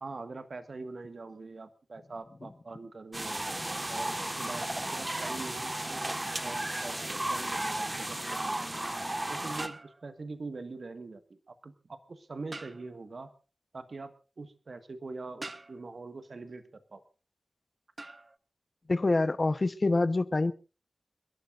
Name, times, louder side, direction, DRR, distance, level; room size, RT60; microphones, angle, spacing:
voice 1, 0.0-3.4 3.9-8.6 9.3-13.3 13.7-17.0, right 3 dB, 60° right, 9 dB, 1.7 m, -43 dB
sound 1, 3.1-9.7, right 1 dB, 20° right, 1.6 m, -34 dB
sound 2, 9.6-10.4 12.5-13.1 15.4-16.1 18.0-18.4, right 2 dB, 40° right, 1.0 m, -45 dB
voice 2, 18.9-20.5, left 2 dB, 40° left, 12 dB, 1.0 m, -26 dB
29.5 x 12.5 x 2.6 m, 0.32 s
wide cardioid pair, 70°, 0 cm